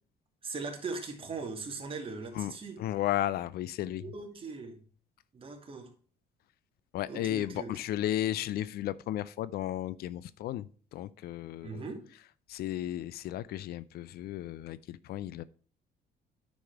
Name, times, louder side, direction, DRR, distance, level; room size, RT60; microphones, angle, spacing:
voice 1, 0.4-2.8 4.0-4.8 5.3-5.9 7.1-7.7 11.6-12.1, right 4 dB, 30° right, 2.4 m, -39 dB
voice 2, 2.3-4.0 6.9-11.9 12.5-15.4, left 13 dB, 65° left, 0.4 m, -34 dB
10.0 x 5.3 x 4.6 m
cardioid pair, 110°, 17 cm